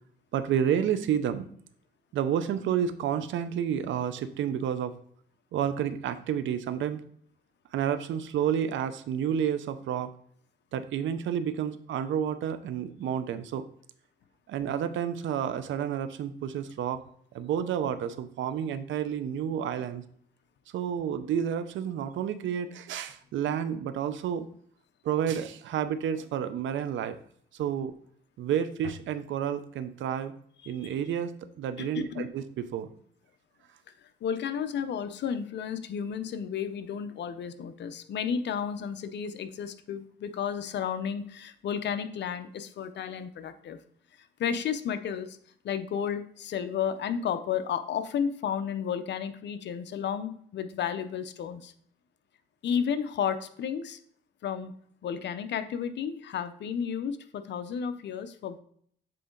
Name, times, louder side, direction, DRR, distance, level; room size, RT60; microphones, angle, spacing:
voice 1, 0.3-1.5 2.1-4.9 5.5-7.0 7.7-10.1 10.7-13.6 14.5-17.0 17.3-20.0 20.7-24.5 25.0-27.2 27.5-27.9 28.4-30.3 30.7-32.9, right 9 dB, 70° right, 11 dB, 0.6 m, -30 dB
voice 2, 30.6-30.9 31.8-32.2 34.0-43.8 44.2-45.4 45.6-51.7 52.6-54.0 54.4-54.7 55.0-58.6, left 7 dB, 60° left, 11 dB, 0.7 m, -32 dB
7.6 x 3.8 x 3.8 m, 0.62 s
cardioid pair, 90°, 20 cm